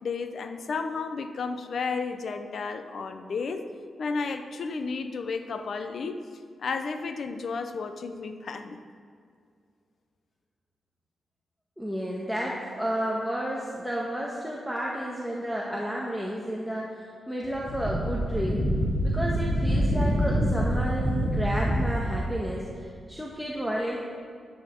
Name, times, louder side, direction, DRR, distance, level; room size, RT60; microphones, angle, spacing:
voice 1, 0.0-3.7 4.0-6.2 6.6-8.8, left 4 dB, 65° left, 8 dB, 0.8 m, -32 dB
voice 2, 11.8-17.0 17.3-18.6 19.0-24.0, equal, ahead, -4 dB, 1.5 m, -31 dB
Wind, 17.4-22.3, equal, 15° right, 3.0 m, -26 dB
14.0 x 10.5 x 3.8 m, 2.3 s
cardioid pair, 85°, 0 cm